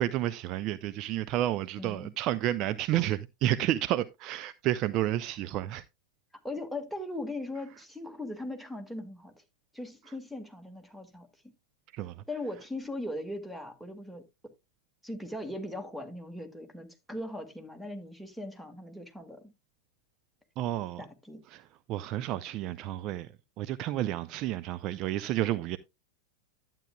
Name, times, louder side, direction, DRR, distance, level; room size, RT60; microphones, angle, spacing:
voice 1, 0.0-5.8 11.9-12.1 20.6-21.0 21.5-23.3 23.6-25.8, right 13 dB, 40° right, 0.4 m, -31 dB
voice 2, 1.8-2.1 6.4-9.3 9.7-11.3 12.3-14.2 15.0-19.4 21.0-21.4, left 1 dB, ahead, 1.9 m, -39 dB
11.5 x 9.0 x 2.3 m
figure-of-eight pair, 90°, 0 cm